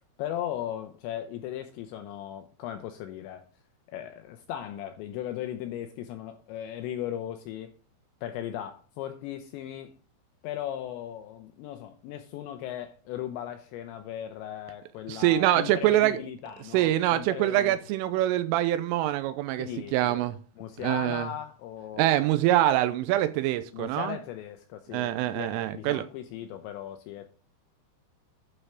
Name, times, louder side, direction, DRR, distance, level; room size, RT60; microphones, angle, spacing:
voice 1, 0.2-3.4 3.9-7.7 8.2-10.0 10.4-17.8 19.6-20.2 20.6-22.3 23.7-27.3, left 11 dB, 85° left, 2.6 m, -37 dB
voice 2, 15.1-16.2 16.7-20.3 20.8-21.3 22.0-24.2 24.9-26.1, right 14 dB, 85° right, 3.1 m, -25 dB
11.5 x 4.3 x 4.9 m
omnidirectional pair, 5.7 m